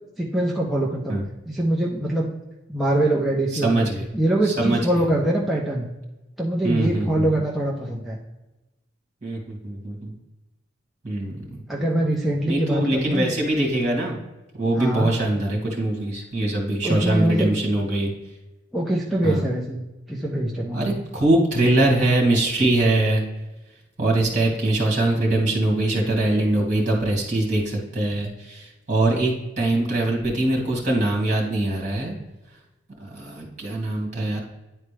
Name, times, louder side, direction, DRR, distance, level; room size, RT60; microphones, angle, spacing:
voice 1, 0.2-1.2 1.5-2.3 2.7-3.8 4.1-5.9 6.4-8.2 11.7-13.3 14.7-15.1 16.8-17.5 18.7-19.8 20.1-21.0, right 1 dB, ahead, -4 dB, 0.7 m, -23 dB
voice 2, 3.6-4.1 4.4-4.8 6.6-7.3 9.2-10.1 11.0-11.4 12.5-14.2 14.6-18.1 19.2-19.4 20.7-23.2 24.0-32.2 33.0-34.4, right 2 dB, 40° right, 0 dB, 2.1 m, -22 dB
9.8 x 4.3 x 3.3 m, 1.0 s
head